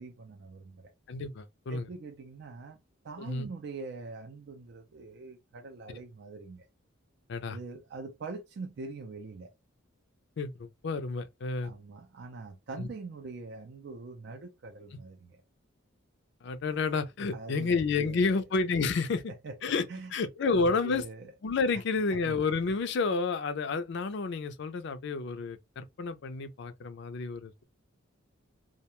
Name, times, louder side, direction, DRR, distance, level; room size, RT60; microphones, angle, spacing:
voice 1, 0.0-0.9 1.7-2.8 3.0-6.7 7.5-9.5 11.6-15.4 17.3-18.4 19.1-19.6 19.9-20.1 20.5-21.3 21.7-21.8 22.1-22.3, right 3 dB, 55° right, 0.4 m, -43 dB
voice 2, 1.1-1.9 3.2-3.5 7.3-7.6 10.4-11.7 12.8-12.9 16.4-19.2 19.6-19.8 20.1-21.0 21.4-27.6, left 4 dB, 60° left, 0.4 m, -30 dB
2.3 x 2.1 x 2.9 m
head